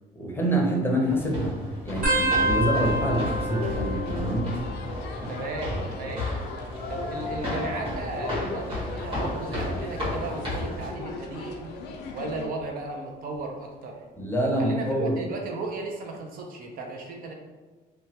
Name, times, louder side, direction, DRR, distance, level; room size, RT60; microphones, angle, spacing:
voice 1, 0.1-1.5 1.8-4.6 14.2-15.3, right 1 dB, 15° left, -2 dB, 0.6 m, -26 dB
sound 1, 1.1-10.9, left 1 dB, 30° right, 1.3 m, -33 dB
sound 2, 2.0-5.2 5.5-6.1 7.1-8.6 9.2-9.5 10.7-11.1 12.6-12.7, right 2 dB, 80° right, 1.2 m, -30 dB
sound 3, 2.3-12.5, left 4 dB, 80° left, 0.4 m, -39 dB
voice 2, 5.3-6.2 6.9-11.7 12.1-14.0 14.6-17.3, right 3 dB, 60° right, 1 dB, 0.5 m, -35 dB
3.0 x 2.2 x 2.8 m, 1.3 s
cardioid pair, 110°, 17 cm